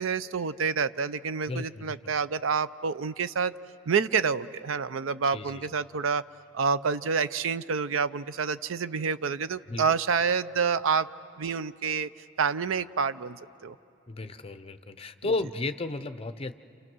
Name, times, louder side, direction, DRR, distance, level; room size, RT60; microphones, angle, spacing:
voice 1, 0.0-3.5 3.9-6.2 6.5-11.1 11.4-12.1 12.4-13.8, right 5 dB, 90° right, 14 dB, 0.5 m, -28 dB
voice 2, 1.5-2.0 5.3-5.7 9.7-10.0 14.1-16.5, left 3 dB, 30° left, 10 dB, 0.6 m, -33 dB
29.0 x 28.5 x 6.2 m, 2.7 s
head